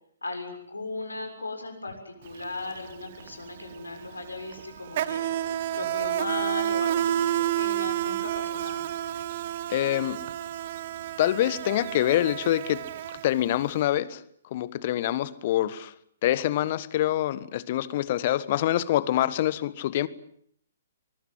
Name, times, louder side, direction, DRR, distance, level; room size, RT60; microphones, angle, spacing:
voice 1, 0.2-5.3 5.7-8.9, left 3 dB, 80° left, 7.0 m, -37 dB
Insect, 2.3-2.4 2.7-13.7, right 12 dB, 45° right, 1.1 m, -30 dB
voice 2, 9.7-10.2 11.2-12.9 13.2-14.2 14.5-15.9 16.2-20.1, left 13 dB, 45° left, 1.3 m, -25 dB
24.5 x 21.5 x 7.8 m
figure-of-eight pair, 125°, 0 cm